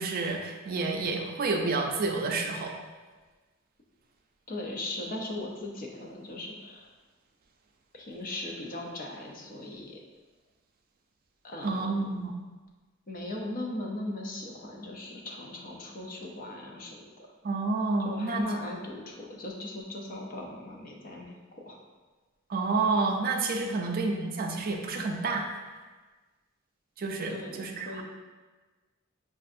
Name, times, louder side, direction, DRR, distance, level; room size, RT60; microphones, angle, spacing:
voice 1, 0.0-2.7 11.6-12.3 17.4-18.4 22.5-25.5 27.0-28.0, right 3 dB, 45° right, 2 dB, 0.4 m, -29 dB
voice 2, 4.5-6.9 7.9-10.0 11.4-12.2 13.1-17.3 18.0-21.8 23.6-23.8 27.3-28.0, left 1 dB, 40° left, 0 dB, 0.5 m, -38 dB
5.2 x 2.4 x 2.5 m, 1.3 s
head